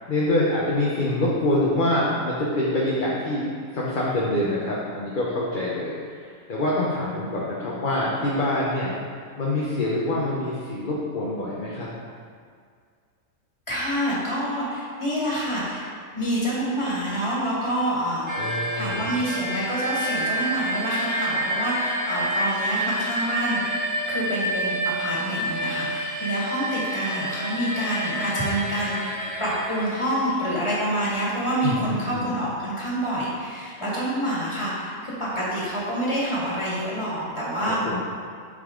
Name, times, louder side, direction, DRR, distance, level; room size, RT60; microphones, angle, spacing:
voice 1, 0.1-8.9 9.4-11.9 18.4-19.3 31.6-32.4 37.8-38.0, left 1 dB, 40° left, -6 dB, 0.9 m, -25 dB
voice 2, 13.7-15.9 16.1-37.8, right 1 dB, 20° left, -8 dB, 2.1 m, -27 dB
sound 1, 18.3-30.7, right 1 dB, 30° right, 0.3 m, -28 dB
8.2 x 5.4 x 3.8 m, 2.1 s
omnidirectional pair, 1.5 m